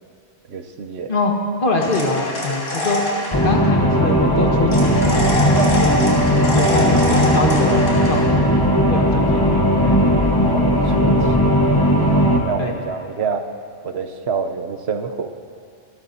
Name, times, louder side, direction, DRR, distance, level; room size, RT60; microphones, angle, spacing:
voice 1, 0.5-1.1 5.5-5.9 10.4-11.3 12.4-13.4 13.8-15.3, right 5 dB, 65° right, 6 dB, 1.0 m, -27 dB
voice 2, 1.6-3.0 3.4-5.7 6.5-8.6 8.9-9.9 12.6-12.7, left 3 dB, 45° left, 0 dB, 1.6 m, -24 dB
sound 1, 1.8-3.4 4.7-8.2, left 1 dB, 70° left, 3.7 m, -25 dB
sound 2, 3.3-12.4, equal, 20° left, 0.9 m, -17 dB
26.0 x 12.5 x 2.8 m, 2.4 s
omnidirectional pair, 1.3 m